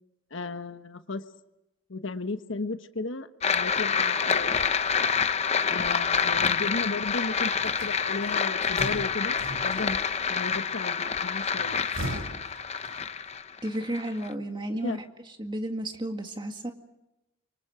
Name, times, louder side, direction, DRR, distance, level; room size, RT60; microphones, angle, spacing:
voice 1, 0.3-1.2 1.9-4.6 5.7-10.0 10.3-11.9 14.8-15.0, left 3 dB, 65° left, 9 dB, 1.2 m, -35 dB
sound 1, 3.4-14.3, left 6 dB, 30° left, 0.8 m, -27 dB
sound 2, 7.7-10.2 11.5-13.3, right 1 dB, 80° right, 6.3 m, -39 dB
voice 2, 13.6-15.0 15.4-16.7, right 1 dB, 20° right, 5 dB, 2.0 m, -32 dB
28.5 x 25.0 x 5.0 m, 0.92 s
head